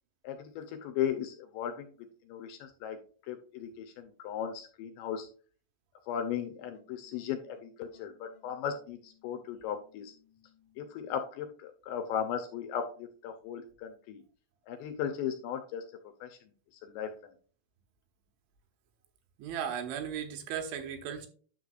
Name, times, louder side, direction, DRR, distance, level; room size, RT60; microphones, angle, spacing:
voice 1, 0.2-1.9 2.3-3.0 3.3-5.3 6.1-10.2 10.8-14.2 14.7-15.8 16.2-16.4 16.7-17.3, left 8 dB, 80° left, 6 dB, 2.6 m, -37 dB
sound 1, 6.2-11.1, left 7 dB, 55° left, 1.5 m, -65 dB
voice 2, 19.4-21.3, right 8 dB, 75° right, 5 dB, 3.3 m, -36 dB
10.0 x 6.5 x 2.4 m, 0.42 s
omnidirectional pair, 5.6 m